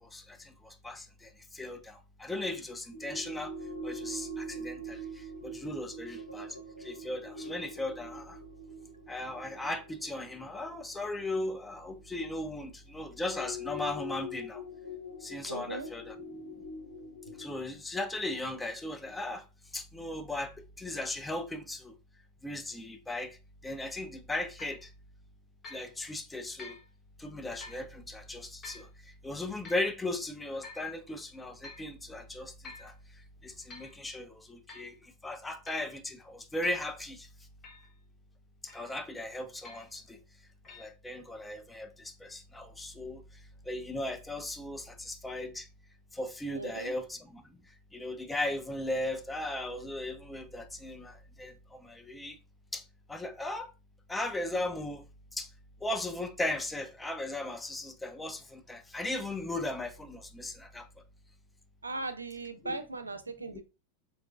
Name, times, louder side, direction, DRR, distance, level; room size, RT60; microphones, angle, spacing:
voice 1, 0.0-3.5 3.8-8.4 9.1-14.6 15.2-16.2 17.4-19.4 19.7-21.9 22.4-23.4 23.6-24.9 25.7-26.8 27.2-28.9 29.2-32.9 33.4-37.3 38.7-40.2 40.7-43.2 43.7-45.7 46.1-47.4 47.9-52.4 52.7-52.8 53.1-53.7 54.1-55.0 55.3-55.5 55.8-60.9 62.6-62.8 63.5-63.6, left 2 dB, 10° left, 0.4 m, -37 dB
sound 1, 2.9-12.1 13.1-17.6, equal, 75° left, 0.5 m, -43 dB
voice 2, 15.5-15.9 46.5-46.9 61.8-63.6, right 2 dB, 80° right, 0.4 m, -38 dB
sound 2, 24.6-24.8 25.6-25.9 26.6-26.9 27.6-27.9 28.6-28.9 29.6-29.9 30.6-30.9 31.6-31.9 32.6-32.9 33.5-34.0 34.7-34.9 35.7-35.9 36.6-36.9 37.6-37.9 38.7-39.0 39.6-40.0 40.6-40.9, left 3 dB, 25° left, 0.8 m, -49 dB
3.5 x 2.3 x 2.4 m
figure-of-eight pair, 90°, 0 cm